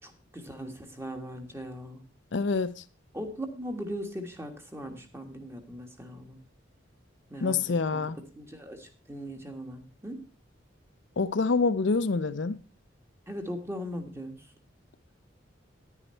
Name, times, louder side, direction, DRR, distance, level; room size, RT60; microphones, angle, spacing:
voice 1, 0.0-2.0 3.1-6.4 7.3-7.6 7.9-8.0 8.4-10.2 13.3-14.5, equal, 15° right, 1.5 m, -39 dB
voice 2, 2.3-2.8 7.4-8.2 11.2-12.6, left 4 dB, 65° left, 0.5 m, -26 dB
10.0 x 9.9 x 4.3 m
head